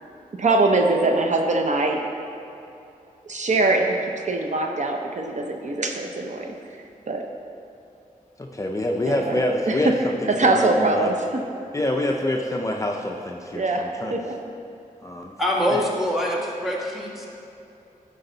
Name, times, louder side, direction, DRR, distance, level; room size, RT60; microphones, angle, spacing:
voice 1, 0.4-2.0 3.3-6.5 7.1-7.3 9.1-9.4 9.7-9.9 10.3-11.4 13.5-14.3, right 2 dB, 55° right, 3 dB, 0.7 m, -22 dB
voice 2, 8.4-11.1 11.7-14.1 15.0-15.3 15.7-15.8, left 1 dB, 20° left, 1 dB, 0.5 m, -26 dB
voice 3, 15.4-17.3, equal, ahead, -4 dB, 1.5 m, -24 dB
12.0 x 5.3 x 3.9 m, 2.8 s
wide cardioid pair, 100°, 15 cm